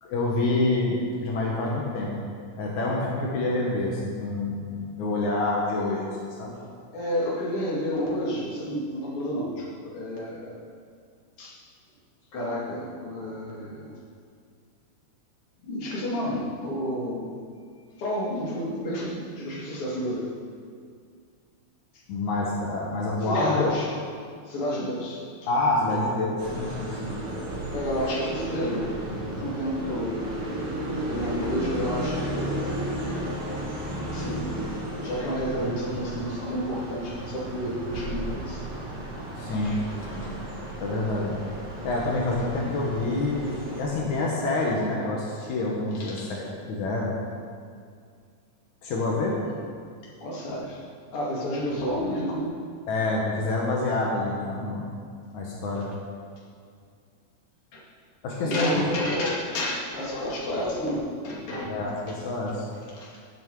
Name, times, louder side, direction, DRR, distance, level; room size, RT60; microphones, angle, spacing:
voice 1, 0.0-2.1 2.6-6.1 6.4-6.6 22.1-23.6 25.5-27.1 39.4-39.8 40.1-40.3 40.8-41.4 41.8-47.2 48.8-49.4 52.9-54.9 55.3-55.9 58.2-59.0 61.7-62.6, left 2 dB, 80° left, -3 dB, 2.9 m, -27 dB
voice 2, 6.9-10.6 11.4-11.6 12.3-14.0 15.6-17.3 18.0-20.3 23.2-23.9 24.5-25.2 25.8-26.0 27.7-29.0 29.4-30.2 31.1-32.8 34.0-34.5 35.0-38.6 39.6-40.5 45.9-46.3 50.2-50.8 51.1-52.5 57.7-57.8 58.4-61.7 63.0-63.1, equal, 50° left, -5 dB, 3.3 m, -30 dB
sound 1, 26.4-43.8, right 1 dB, 45° right, 3.6 m, -33 dB
16.5 x 8.4 x 4.8 m, 2.2 s
omnidirectional pair, 3.3 m